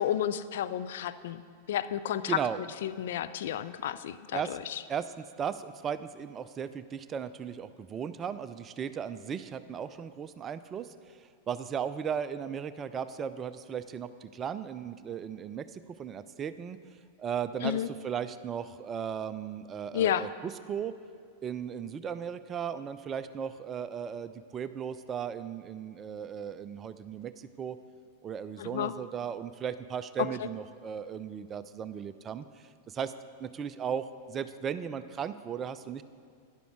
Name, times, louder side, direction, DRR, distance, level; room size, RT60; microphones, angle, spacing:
voice 1, 0.0-1.4 1.7-2.4 2.8-4.8 17.6-17.9 19.9-20.3 28.6-28.9, left 10 dB, 60° left, 13 dB, 0.4 m, -31 dB
voice 2, 2.3-2.6 4.3-4.6 4.9-16.8 17.2-20.9 21.4-27.8 28.2-33.1 33.4-36.0, right 7 dB, 25° right, 13 dB, 0.5 m, -36 dB
12.0 x 10.5 x 4.7 m, 2.2 s
figure-of-eight pair, 95°, 0 cm